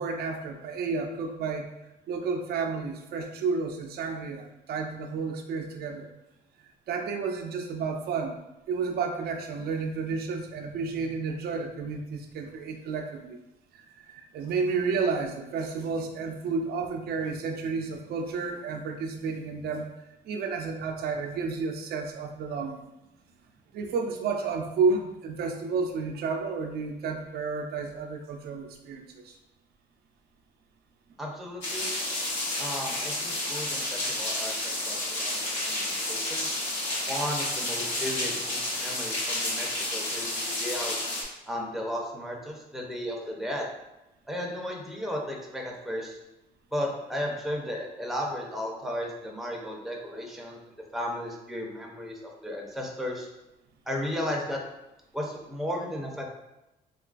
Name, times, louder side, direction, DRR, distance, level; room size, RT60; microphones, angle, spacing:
voice 1, 0.0-1.7 2.1-6.1 6.9-13.4 13.7-19.9 20.2-22.8 23.7-29.4, right 4 dB, 60° right, 3 dB, 0.4 m, -31 dB
voice 2, 31.2-31.9 32.6-36.5 37.1-41.0 41.5-43.7 44.3-46.2 46.7-50.6 50.9-53.3 53.9-54.6 55.1-56.2, equal, ahead, -1 dB, 0.5 m, -34 dB
sound 1, 31.6-41.2, left 1 dB, 85° left, 0.9 m, -31 dB
3.1 x 2.3 x 2.4 m, 0.95 s
cardioid pair, 95°, 18 cm